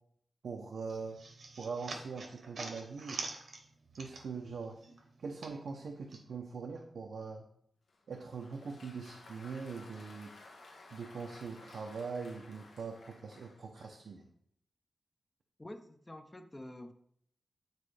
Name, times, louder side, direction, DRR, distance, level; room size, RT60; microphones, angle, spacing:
voice 1, 0.4-1.2 1.6-3.2 4.0-4.8 5.2-7.4 8.1-10.3 10.9-14.3, right 5 dB, 80° right, 2 dB, 0.7 m, -42 dB
sound 1, 0.9-4.5 4.8-6.2, right 3 dB, 60° right, 1.0 m, -45 dB
Applause, 7.9-14.1, left 2 dB, 85° left, 1.1 m, -56 dB
voice 2, 15.6-16.9, left 1 dB, 15° left, 8 dB, 0.6 m, -48 dB
9.1 x 4.1 x 3.3 m, 0.69 s
wide cardioid pair, 135°, 0 cm